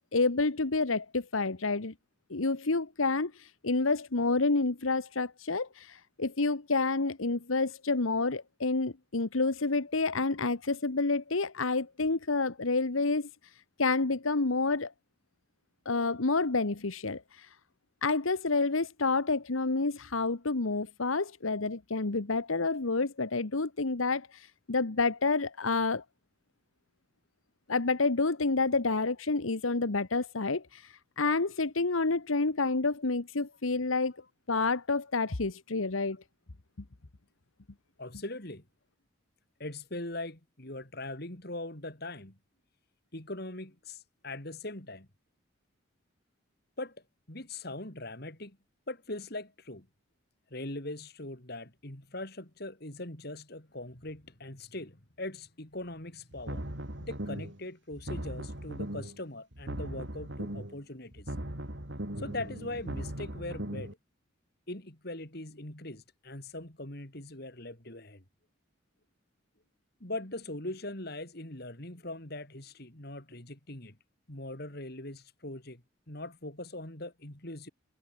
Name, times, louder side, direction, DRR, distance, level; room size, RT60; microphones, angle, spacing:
voice 1, 0.1-1.9 2.3-13.3 13.8-14.9 15.8-17.5 18.0-26.0 27.7-34.1 34.5-36.2, left 3 dB, 85° left, 1.3 m, -29 dB
voice 2, 38.0-38.6 39.6-42.4 43.1-45.1 46.8-47.0 47.3-48.6 48.9-49.9 50.5-56.6 57.0-61.3 62.2-64.0 64.7-68.2 70.0-74.0 74.3-75.8 76.1-77.7, left 2 dB, 50° left, 3.7 m, -41 dB
sound 1, 56.3-57.6 57.9-59.2 59.5-60.8 61.1-63.9, right 1 dB, 60° right, 3.8 m, -38 dB
head